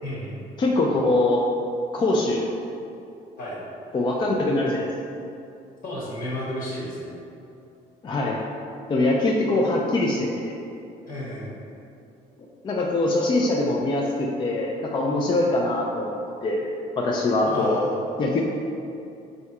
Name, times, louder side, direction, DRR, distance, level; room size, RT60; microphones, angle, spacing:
voice 1, 0.0-0.4 3.4-3.6 5.8-7.1 11.1-11.5 17.4-18.0, left 1 dB, 60° left, -7 dB, 1.2 m, -32 dB
voice 2, 0.6-1.4 1.9-2.4 3.9-4.9 8.0-8.4 8.9-10.5 12.6-16.7 17.0-17.8 18.2-18.4, left 2 dB, 30° left, -2 dB, 0.4 m, -23 dB
3.3 x 2.7 x 4.6 m, 2.6 s
cardioid pair, 110°, 17 cm